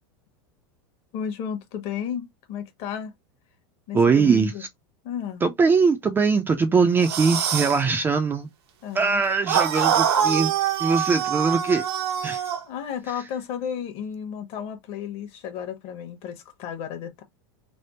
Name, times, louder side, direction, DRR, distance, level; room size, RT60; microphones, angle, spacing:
voice 1, 1.1-3.1 3.9-4.6 5.0-5.4 8.8-9.2 12.7-17.2, left 8 dB, 45° left, 1.1 m, -33 dB
voice 2, 3.9-4.5 5.4-8.5 8.9-10.5 10.8-11.8 12.2-12.4, right 5 dB, 15° right, 0.4 m, -21 dB
sound 1, 7.0-7.8 9.5-12.6, right 9 dB, 80° right, 0.9 m, -24 dB
3.3 x 2.1 x 4.1 m
supercardioid pair, 140°, 13 cm